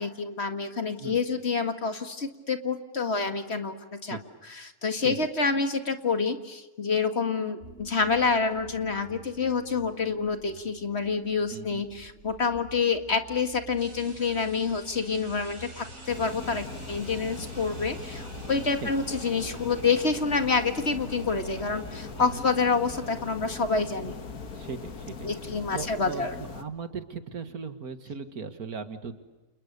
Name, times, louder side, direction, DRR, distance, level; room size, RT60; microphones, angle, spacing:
voice 1, 0.0-4.2 4.8-24.1 25.2-26.3, left 4 dB, 45° left, 7 dB, 2.1 m, -28 dB
sound 1, 7.6-22.9, right 2 dB, 45° right, 3.8 m, -50 dB
voice 2, 11.5-11.8 18.8-18.9 22.2-22.5 24.5-25.3 25.7-29.2, right 5 dB, 85° right, 9 dB, 2.4 m, -38 dB
sound 2, 13.8-25.8, right 1 dB, 65° right, 4.9 m, -49 dB
sound 3, 16.1-26.6, left 4 dB, 90° left, 2.1 m, -40 dB
30.0 x 28.5 x 6.8 m, 1.1 s
omnidirectional pair, 1.5 m